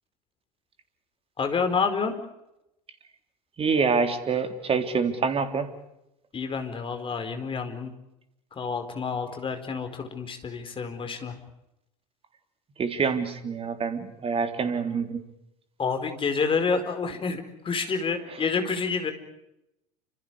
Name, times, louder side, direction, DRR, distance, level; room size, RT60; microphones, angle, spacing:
voice 1, 1.4-2.1 6.3-7.9 8.6-11.4 15.8-19.1, left 5 dB, 25° left, 7 dB, 4.8 m, -28 dB
voice 2, 3.6-5.7 12.8-15.2, right 5 dB, 30° right, 7 dB, 3.6 m, -26 dB
30.0 x 27.5 x 5.0 m, 0.85 s
figure-of-eight pair, 75°, 21 cm